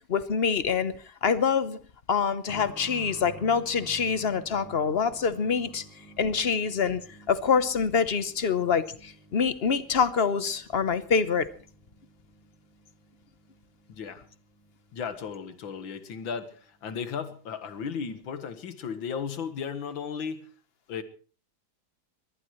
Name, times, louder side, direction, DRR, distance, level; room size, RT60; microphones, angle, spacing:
voice 1, 0.1-0.9 1.2-1.8 2.1-5.8 6.2-7.0 7.3-11.5, left 6 dB, 45° left, 13 dB, 0.9 m, -25 dB
sound 1, 2.5-16.9 17.2-17.3 18.2-18.3, right 2 dB, ahead, 6.2 m, -52 dB
voice 2, 13.9-14.3 14.9-20.5 20.9-21.0, left 6 dB, 80° left, 11 dB, 2.2 m, -35 dB
23.0 x 18.5 x 3.1 m, 0.38 s
omnidirectional pair, 2.1 m